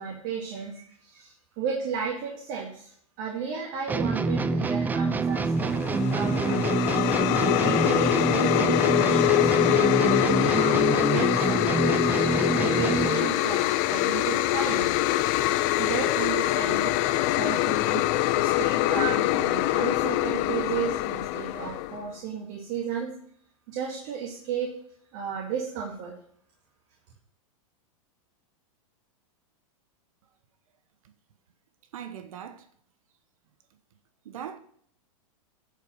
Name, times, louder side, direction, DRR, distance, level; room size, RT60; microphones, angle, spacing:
voice 1, 0.0-6.7 7.4-14.9 15.8-18.0 18.4-23.1 23.7-24.7 25.1-26.1, right 7 dB, 50° right, 2.2 m, -34 dB
sound 1, 3.9-13.3, right 4 dB, 10° right, 0.4 m, -26 dB
sound 2, 5.6-22.1, left 16 dB, 40° left, 0.6 m, -24 dB
voice 2, 31.9-32.7 34.2-34.6, right 9 dB, 75° right, 1.0 m, -40 dB
10.5 x 5.2 x 6.4 m
hypercardioid pair, 130°, 18 cm